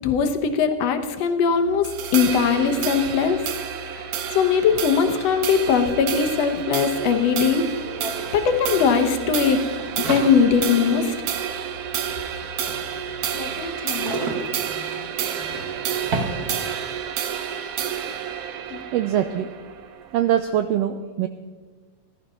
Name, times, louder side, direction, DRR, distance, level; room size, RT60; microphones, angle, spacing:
voice 1, 0.0-3.4 4.0-4.1 4.3-7.7 8.3-9.6 10.0-11.1 13.3-14.2 18.7-18.8, left 6 dB, 65° left, 6 dB, 2.0 m, -20 dB
sound 1, 1.5-13.7, left 6 dB, 25° right, 1.5 m, -44 dB
sound 2, 1.8-20.4, right 9 dB, 65° right, 1.7 m, -30 dB
sound 3, 6.3-6.4 6.6-17.0, right 2 dB, 40° right, 1.5 m, -34 dB
voice 2, 18.9-19.5 20.1-21.3, right 10 dB, 80° right, 9 dB, 1.4 m, -22 dB
14.5 x 12.5 x 5.5 m, 1.4 s
omnidirectional pair, 3.4 m